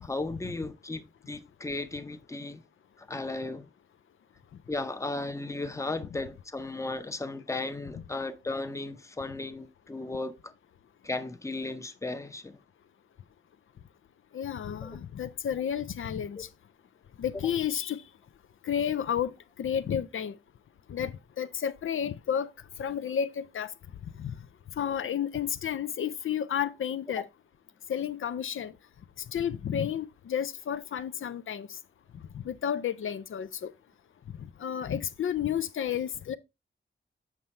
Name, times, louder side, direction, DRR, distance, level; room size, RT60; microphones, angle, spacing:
voice 1, 0.0-2.6 3.0-3.7 4.7-10.5 11.0-12.6 14.8-14.9 16.4-16.5, left 2 dB, 15° left, 0.6 m, -35 dB
voice 2, 14.3-16.5 17.2-18.0 18.6-19.3 19.6-20.4 20.9-22.5 22.8-23.7 24.2-24.3 24.8-27.2 27.9-28.7 29.3-31.8 32.3-33.7 34.4-36.3, left 9 dB, 85° left, 0.4 m, -31 dB
7.2 x 5.5 x 3.1 m
wide cardioid pair, 90°, 20 cm